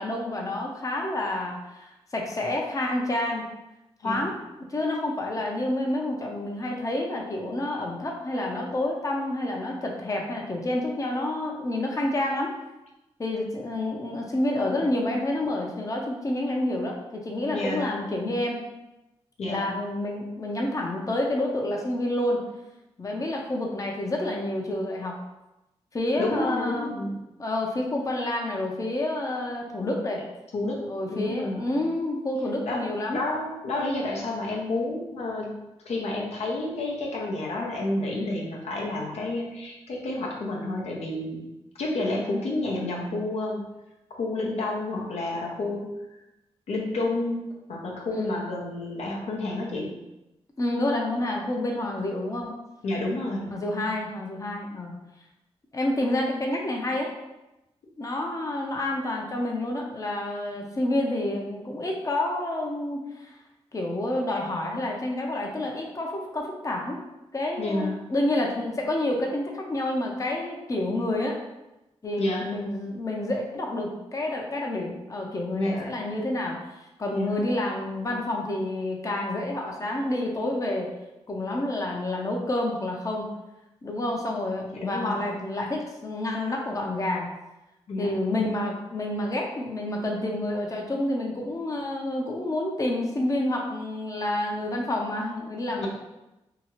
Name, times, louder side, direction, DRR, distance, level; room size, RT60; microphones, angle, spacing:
voice 1, 0.0-3.5 4.0-4.3 4.7-12.5 13.2-18.6 19.5-22.4 23.0-25.2 25.9-26.9 27.4-30.2 30.9-33.2 48.1-48.4 50.6-52.4 53.5-54.9 55.7-57.1 58.0-63.3 63.7-67.0 67.3-71.4 72.0-76.6 77.0-80.9 81.3-83.3 83.8-87.3 88.0-95.9, left 1 dB, 30° left, 0 dB, 0.6 m, -29 dB
voice 2, 17.5-17.9 19.4-19.7 26.2-27.2 30.5-31.7 32.7-32.8 33.1-35.6 35.9-41.5 41.8-43.7 44.1-45.9 46.7-50.0 52.8-53.6 67.6-68.1 72.2-72.5 75.5-76.0 77.1-77.4 84.7-85.3 87.9-88.1 95.8-95.9, left 2 dB, 75° left, -2 dB, 0.6 m, -30 dB
2.8 x 2.3 x 2.9 m, 0.96 s
cardioid pair, 60°, 11 cm